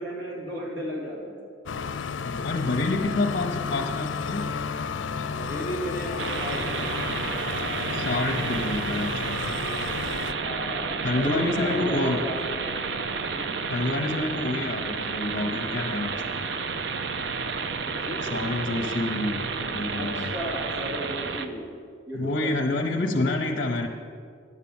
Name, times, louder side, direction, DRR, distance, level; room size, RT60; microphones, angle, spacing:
voice 1, 0.0-1.4 5.2-7.1 10.4-12.7 13.3-13.6 17.9-18.2 20.0-21.7 22.1-22.5, equal, 80° right, -2 dB, 3.1 m, -34 dB
sound 1, 1.7-10.3, left 5 dB, 80° left, 0.5 m, -32 dB
voice 2, 2.2-4.5 7.9-9.4 11.0-12.2 13.7-16.4 18.3-20.3 22.1-23.9, left 2 dB, 50° left, 3 dB, 0.8 m, -28 dB
sound 2, 6.2-21.5, right 5 dB, 65° right, 0.6 m, -31 dB
9.7 x 8.2 x 7.2 m, 2.3 s
head